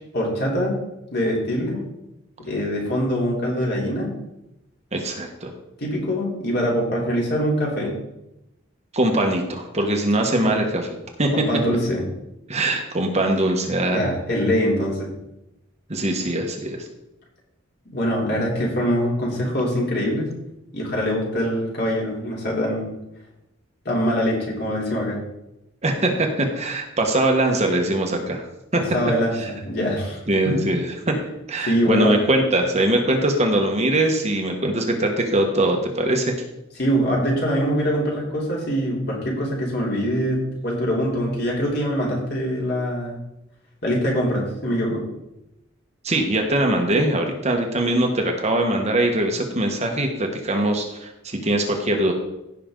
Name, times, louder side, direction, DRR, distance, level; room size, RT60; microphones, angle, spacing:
voice 1, 0.1-0.8 1.1-1.8 2.4-4.2 5.8-8.0 10.4-10.6 11.3-12.1 13.9-15.1 17.9-20.3 20.7-22.9 23.9-25.2 28.9-30.6 31.6-32.2 36.8-43.2 43.8-45.0, equal, 55° left, -3 dB, 3.4 m, -23 dB
voice 2, 4.9-5.5 8.9-11.3 12.5-14.1 15.9-16.8 25.8-28.4 28.7-28.8 30.3-31.1 31.5-36.3 46.0-52.1, right 1 dB, 35° right, 2 dB, 1.3 m, -22 dB
15.5 x 5.9 x 3.8 m, 0.89 s
head